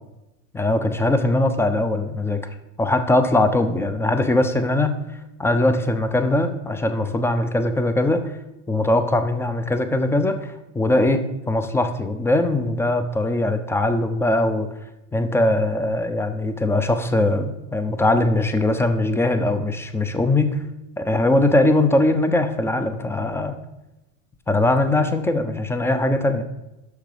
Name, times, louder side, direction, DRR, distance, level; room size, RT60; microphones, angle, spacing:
voice 1, 0.5-2.4 2.8-5.0 5.4-8.2 8.7-14.7 15.1-20.6 21.0-23.6 24.5-26.4, left 2 dB, 5° left, 9 dB, 0.6 m, -21 dB
6.6 x 6.0 x 5.0 m, 0.98 s
hypercardioid pair, 105°, 38 cm